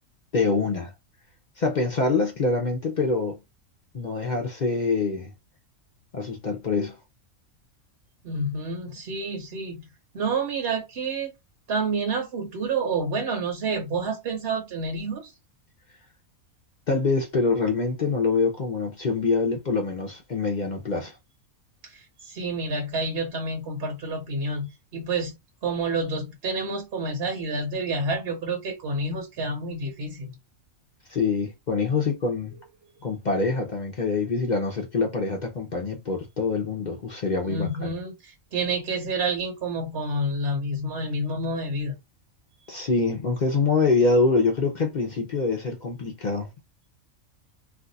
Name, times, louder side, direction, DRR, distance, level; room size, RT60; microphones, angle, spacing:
voice 1, 0.3-0.9 1.6-3.4 3.9-5.3 6.1-7.0 16.9-21.2 31.1-32.6 33.0-37.9 42.7-46.5, left 4 dB, 55° left, 0.5 m, -25 dB
voice 2, 8.2-9.8 10.1-11.3 11.7-15.3 21.8-25.3 25.6-30.3 37.5-42.0, right 2 dB, 55° right, 0.9 m, -29 dB
2.6 x 2.3 x 3.8 m
omnidirectional pair, 1.4 m